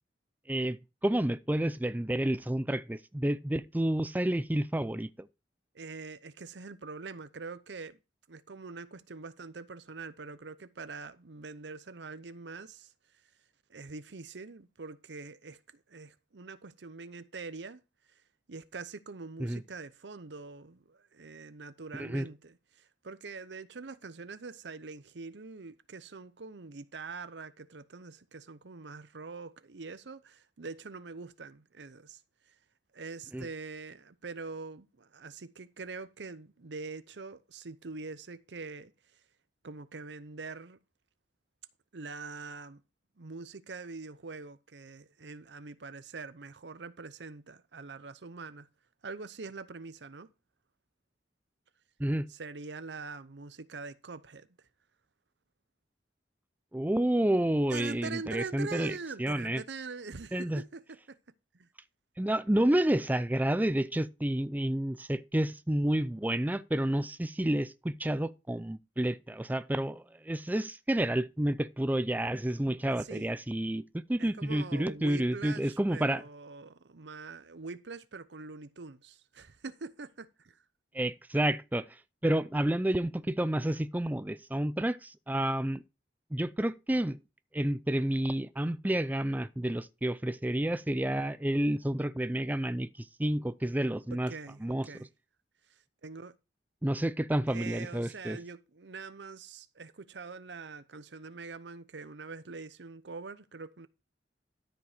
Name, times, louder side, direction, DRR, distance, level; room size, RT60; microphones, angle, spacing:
voice 1, 1.0-5.3 19.4-19.6 21.9-22.3 33.3-33.5 52.0-52.3 56.7-59.6 60.3-60.6 62.2-76.2 80.9-81.9 82.2-85.8 86.3-87.2 87.5-94.3 94.6-94.9 96.8-98.4, right 1 dB, 10° right, 0.4 m, -30 dB
voice 2, 5.7-8.0 8.3-12.9 13.7-17.8 18.5-32.2 32.5-32.6 32.9-38.9 39.6-40.8 41.9-42.8 43.2-48.7 49.0-50.3 52.3-54.5 57.7-61.2 61.5-61.7 73.0-73.3 74.2-80.6 94.1-95.1 96.0-96.4 97.5-103.9, right 4 dB, 80° right, 0.8 m, -44 dB
13.0 x 5.4 x 5.0 m
head